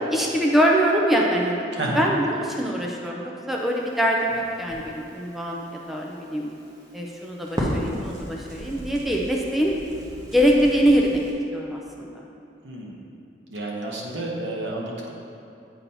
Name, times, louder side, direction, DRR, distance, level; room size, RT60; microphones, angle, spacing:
voice 1, 0.1-6.5 6.9-9.7 10.3-11.2 11.5-12.1, equal, ahead, -2 dB, 0.4 m, -23 dB
voice 2, 1.7-2.0 12.6-13.0 13.5-15.1, right 2 dB, 70° right, -3 dB, 1.0 m, -30 dB
Crackle, 3.5-11.3, equal, 20° right, 0.9 m, -36 dB
8.3 x 2.8 x 5.3 m, 2.7 s
head